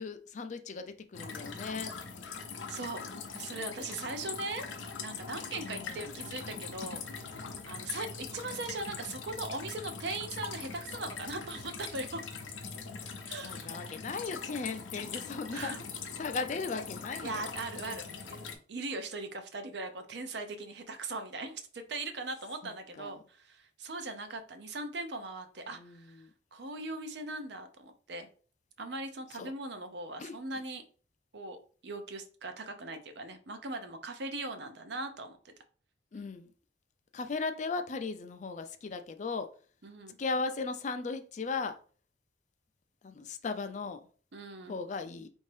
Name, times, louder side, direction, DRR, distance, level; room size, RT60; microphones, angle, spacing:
voice 1, 0.0-1.9 5.6-6.1 13.4-15.7 16.2-17.5 22.6-23.2 25.8-26.3 29.3-29.5 30.2-30.3 36.1-36.5 37.1-39.5 40.2-41.7 43.0-44.0 44.7-45.3, left 4 dB, 40° left, 8 dB, 0.4 m, -37 dB
sound 1, 1.1-18.6, left 5 dB, 85° left, 0.6 m, -42 dB
voice 2, 2.7-3.0 3.3-4.7 5.0-8.1 8.3-12.2 13.3-13.7 15.5-15.8 17.2-26.2 26.5-28.3 28.8-30.8 31.3-31.6 31.8-35.5 39.8-40.2 44.3-44.8, right 2 dB, 60° right, 7 dB, 0.6 m, -40 dB
4.4 x 2.7 x 3.3 m, 0.40 s
head